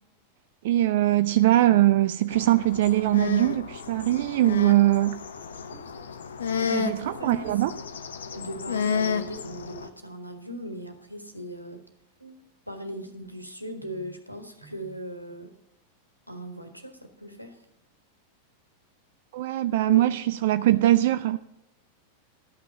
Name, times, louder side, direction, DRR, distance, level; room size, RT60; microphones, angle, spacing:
voice 1, 0.6-5.2 6.7-7.7 19.3-21.4, right 15 dB, 55° right, 0.3 m, -21 dB
sound 1, 2.3-9.9, left 6 dB, 65° left, 0.8 m, -32 dB
voice 2, 6.6-7.9 8.3-11.8 12.2-15.5 16.3-17.6 19.9-20.1, equal, 90° right, 1.4 m, -38 dB
12.5 x 5.9 x 7.0 m
figure-of-eight pair, 90°, 0 cm